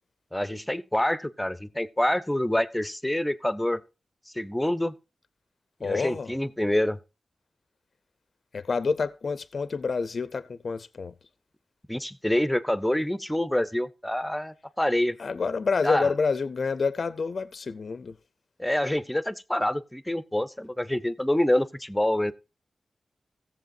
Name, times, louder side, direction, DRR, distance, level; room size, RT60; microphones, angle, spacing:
voice 1, 0.3-3.8 4.3-4.9 5.8-7.0 11.9-15.2 15.8-16.1 18.6-22.3, left 1 dB, 10° left, 0.5 m, -26 dB
voice 2, 5.8-6.4 8.5-11.1 15.2-18.2, left 4 dB, 60° left, 0.5 m, -28 dB
16.5 x 7.4 x 2.6 m
wide cardioid pair, 95°, 0 cm